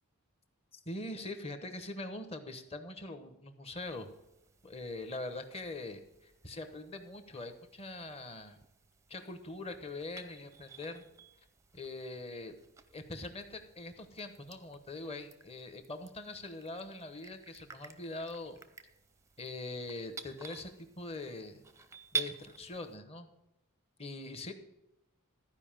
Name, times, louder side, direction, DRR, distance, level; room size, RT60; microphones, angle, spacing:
voice 1, 0.9-4.1 4.6-8.6 9.1-11.0 11.7-12.5 12.9-18.6 19.4-21.6 22.1-23.3 24.0-24.5, left 2 dB, 25° left, 8 dB, 1.1 m, -43 dB
sound 1, 3.8-23.0, right 5 dB, 15° right, 0.5 m, -48 dB
13.5 x 5.1 x 7.4 m, 0.89 s
head